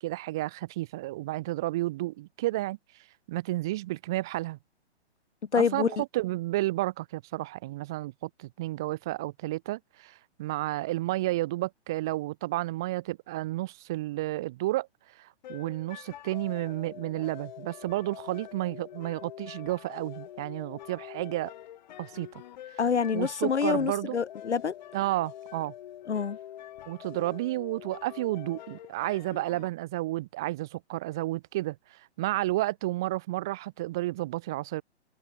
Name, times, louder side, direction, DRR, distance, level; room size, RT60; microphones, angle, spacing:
voice 1, 0.0-2.8 3.3-4.6 5.5-14.9 15.2-21.5 22.0-22.3 23.1-24.2 24.9-25.7 26.9-31.8 32.2-34.8, right 17 dB, 5° right, 0.4 m, -31 dB
voice 2, 5.5-6.0 22.8-24.7 26.1-26.4, left 6 dB, 80° left, 3.9 m, -27 dB
sound 1, 15.4-29.7, left 12 dB, 40° left, 6.7 m, -45 dB
hypercardioid pair, 165°, 33 cm